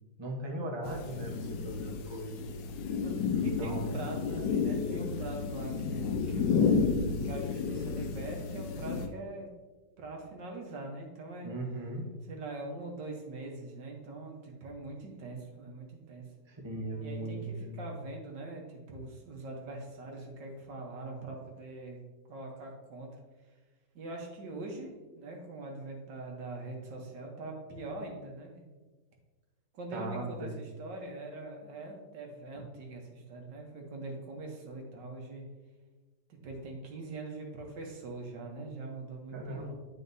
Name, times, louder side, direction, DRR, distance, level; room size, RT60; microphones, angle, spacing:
voice 1, 0.2-2.4 3.3-3.9 11.4-12.1 16.5-17.8 29.9-30.6 32.5-32.6 39.3-39.7, right 1 dB, 20° right, -1 dB, 0.9 m, -38 dB
sound 1, 0.8-9.1, left 5 dB, 85° left, 1.3 m, -31 dB
voice 2, 3.4-6.8 7.2-9.5 10.0-11.5 12.3-16.3 17.0-22.0 22.3-23.1 23.9-28.6 29.7-35.4 36.3-39.7, right 2 dB, 85° right, 1 dB, 1.8 m, -42 dB
9.3 x 5.0 x 2.7 m, 1.3 s
omnidirectional pair, 1.9 m